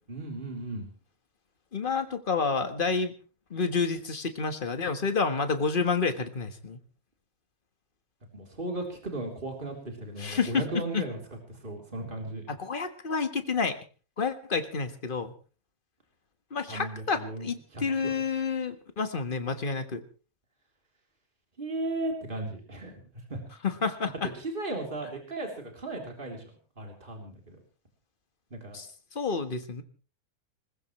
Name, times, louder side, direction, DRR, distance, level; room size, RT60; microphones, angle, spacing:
voice 1, 0.1-0.9 8.3-11.2 11.5-12.4 16.7-18.1 21.6-23.4 24.3-26.4 26.8-27.6 28.5-28.8, right 2 dB, 35° right, 1 dB, 3.8 m, -36 dB
voice 2, 1.7-3.1 3.5-6.8 10.2-10.6 10.9-11.0 12.5-13.8 14.2-15.3 16.5-20.0 23.6-24.3 28.7-28.9 29.1-29.8, left 5 dB, 35° left, 8 dB, 1.6 m, -29 dB
20.5 x 20.5 x 3.2 m, 0.37 s
omnidirectional pair, 1.5 m